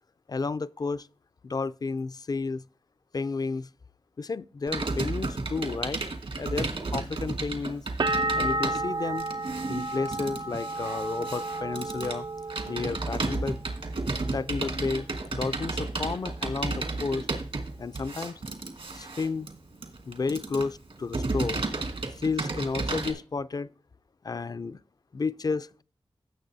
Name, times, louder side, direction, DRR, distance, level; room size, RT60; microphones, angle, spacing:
voice 1, 0.3-1.1 1.4-2.6 3.1-3.7 4.2-6.0 6.4-7.8 8.3-9.3 9.7-12.3 12.7-13.6 14.3-17.3 17.8-18.4 18.9-19.5 20.1-21.6 22.2-23.7 24.2-24.8 25.1-25.8, left 4 dB, 40° left, 0.3 m, -32 dB
Computer keyboard, 4.7-23.1, right 3 dB, 75° right, 1.5 m, -33 dB
sound 1, 8.0-13.6 13.9-14.7, right 2 dB, 50° right, 0.4 m, -32 dB
16.5 x 6.5 x 2.7 m
cardioid pair, 45°, 10 cm